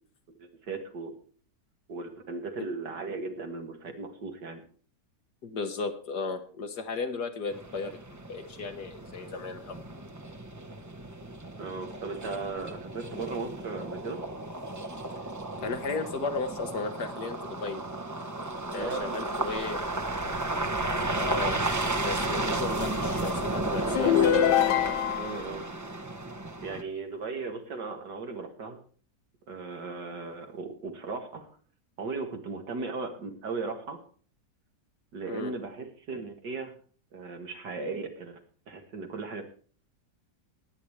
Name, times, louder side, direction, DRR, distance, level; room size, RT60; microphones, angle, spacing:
voice 1, 0.4-1.1 1.9-4.6 11.6-14.2 18.7-19.3 25.1-25.6 26.6-28.8 29.5-31.5 32.0-34.0 35.1-36.7 37.1-38.4 38.7-39.4, right 4 dB, 80° right, 4 dB, 2.5 m, -37 dB
voice 2, 5.4-8.0 8.3-9.8 15.6-17.9 18.7-19.8 21.2-21.6 21.9-24.4 35.3-35.5, left 4 dB, 70° left, 7 dB, 2.0 m, -35 dB
sound 1, 7.5-26.8, right 2 dB, 15° right, 0.8 m, -33 dB
sound 2, 24.0-25.4, left 9 dB, 90° left, 1.4 m, -23 dB
19.5 x 8.9 x 3.3 m, 0.44 s
omnidirectional pair, 1.8 m